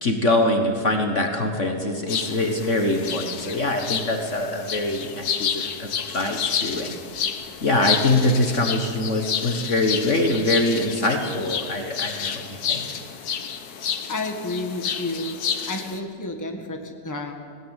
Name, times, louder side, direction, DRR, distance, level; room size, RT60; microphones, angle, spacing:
voice 1, 0.0-5.9 6.1-7.0 7.6-12.9, left 2 dB, 45° left, 4 dB, 1.7 m, -23 dB
sound 1, 2.1-16.0, left 7 dB, 65° left, 1.6 m, -30 dB
voice 2, 14.1-15.4 15.7-17.3, left 2 dB, 10° left, 4 dB, 1.7 m, -30 dB
19.5 x 17.5 x 9.0 m, 2.2 s
omnidirectional pair, 1.8 m